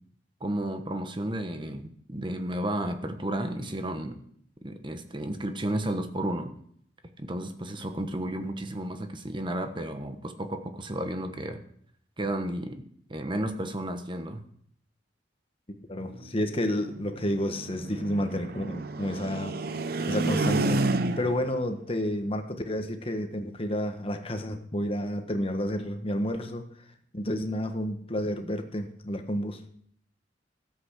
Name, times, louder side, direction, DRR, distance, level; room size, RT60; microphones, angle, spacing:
voice 1, 0.4-4.2 4.6-6.5 7.2-11.6 12.2-12.8 13.1-14.4, right 1 dB, 25° right, 7 dB, 1.2 m, -32 dB
voice 2, 15.9-19.5 20.1-20.8 21.2-26.6 27.1-29.6, equal, 30° left, 5 dB, 1.4 m, -30 dB
sound 1, 16.0-21.5, right 2 dB, 55° right, 0.7 m, -30 dB
13.5 x 8.2 x 6.5 m, 0.65 s
head